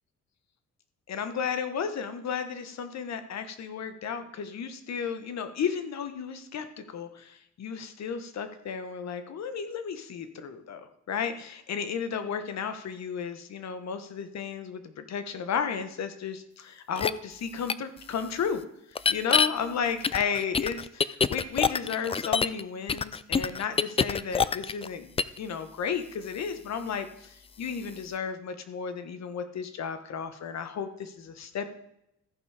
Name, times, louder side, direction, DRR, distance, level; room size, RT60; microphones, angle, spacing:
voice 1, 1.1-18.6 19.1-25.1 25.4-31.7, left 6 dB, 60° left, 9 dB, 1.3 m, -33 dB
sound 1, 17.0-17.1 17.7-17.8 18.9-19.5 20.0-22.6 22.9-24.9 25.2-25.4, left 5 dB, 20° left, 0.3 m, -25 dB
14.0 x 5.5 x 5.0 m, 0.78 s
cardioid pair, 90°, 30 cm